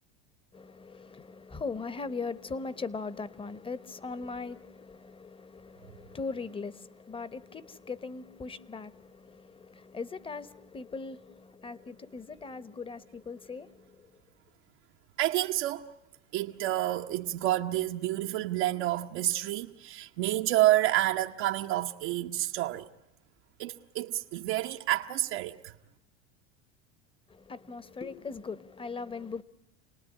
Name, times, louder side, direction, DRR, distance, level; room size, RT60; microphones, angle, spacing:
voice 1, 0.5-14.1 27.3-29.4, left 4 dB, 15° left, 0.9 m, -40 dB
voice 2, 15.2-15.8 16.3-22.9 23.6-25.7, right 15 dB, 75° right, 1.0 m, -29 dB
28.5 x 19.0 x 9.8 m
supercardioid pair, 105°, 33 cm